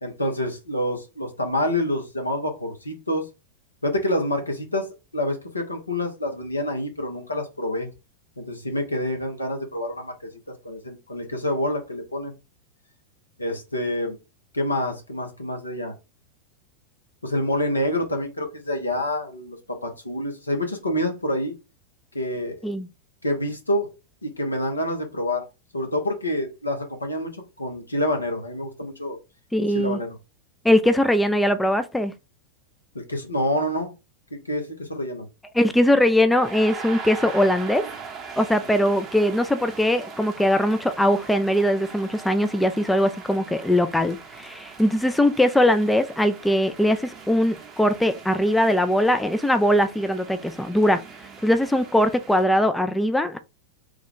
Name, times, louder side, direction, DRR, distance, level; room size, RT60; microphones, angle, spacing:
voice 1, 0.0-3.3 3.8-4.9 5.1-7.9 8.4-10.1 10.6-12.3 13.4-14.2 14.5-15.9 17.2-21.5 22.1-22.7 23.2-23.9 24.2-25.5 25.7-29.2 29.7-30.2 32.9-33.9 34.3-35.3, left 1 dB, 80° left, 0.9 m, -27 dB
voice 2, 29.5-30.0 30.6-32.1 35.5-37.9 38.4-51.0 51.4-53.4, left 1 dB, 5° left, 0.3 m, -21 dB
sound 1, 35.7-52.4, right 5 dB, 25° right, 0.8 m, -41 dB
3.2 x 2.3 x 3.7 m
figure-of-eight pair, 90°, 0 cm